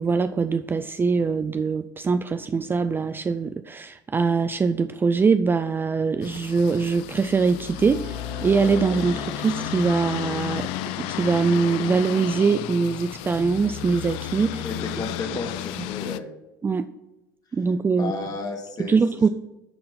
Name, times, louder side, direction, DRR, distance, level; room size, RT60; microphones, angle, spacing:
voice 1, 0.0-10.7 11.0-14.6 16.6-16.9 17.5-18.1 18.8-19.3, right 5 dB, 20° right, 11 dB, 0.4 m, -23 dB
sound 1, 6.2-16.2, left 13 dB, 60° left, 0.4 m, -33 dB
sound 2, 7.8-14.1, right 5 dB, 40° right, 1.2 m, -43 dB
voice 2, 14.6-16.3 17.9-19.3, left 3 dB, 35° left, 3 dB, 1.9 m, -33 dB
11.0 x 3.7 x 5.8 m, 1.0 s
hypercardioid pair, 70°, 11 cm